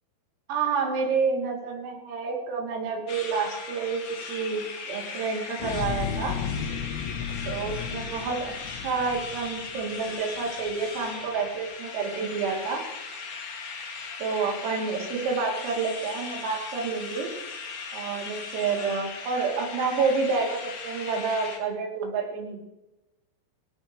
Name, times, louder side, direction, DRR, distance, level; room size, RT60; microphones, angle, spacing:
voice 1, 0.5-4.0 4.3-6.4 7.5-12.8 14.2-17.3 17.9-22.6, right 5 dB, 75° right, 0 dB, 5.7 m, -29 dB
sound 1, 3.1-21.6, left 5 dB, 45° left, 2.8 m, -38 dB
sound 2, 5.6-10.1 10.6-10.7, left 7 dB, 80° left, 3.5 m, -34 dB
19.5 x 16.5 x 3.2 m, 0.96 s
omnidirectional pair, 6.0 m